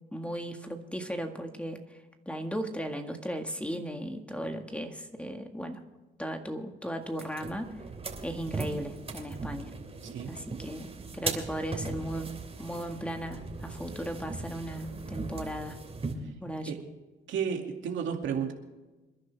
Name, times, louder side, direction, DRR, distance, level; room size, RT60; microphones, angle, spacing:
voice 1, 0.1-2.0 2.2-5.8 6.2-7.8 8.2-9.7 10.3-15.8 16.4-16.7, equal, 5° left, 5 dB, 1.8 m, -36 dB
sound 1, 7.1-16.1, right 3 dB, 30° right, 3.0 m, -39 dB
voice 2, 17.3-18.5, right 7 dB, 75° right, 2 dB, 2.4 m, -32 dB
27.5 x 10.5 x 3.5 m, 1.2 s
cardioid pair, 90°, 20 cm